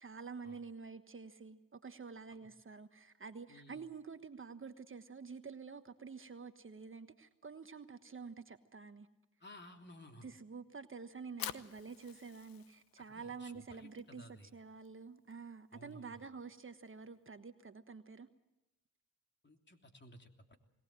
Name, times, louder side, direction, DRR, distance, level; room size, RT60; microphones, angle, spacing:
voice 1, 0.0-9.1 10.2-18.3, right 5 dB, 35° right, 9 dB, 1.3 m, -49 dB
voice 2, 3.5-3.8 9.4-10.3 13.1-14.5 15.7-16.3 19.4-20.6, left 1 dB, 30° left, 4 dB, 3.2 m, -56 dB
Fire, 11.1-17.3, left 11 dB, 85° left, 1.0 m, -51 dB
21.5 x 18.5 x 7.6 m, 0.98 s
supercardioid pair, 60°, 34 cm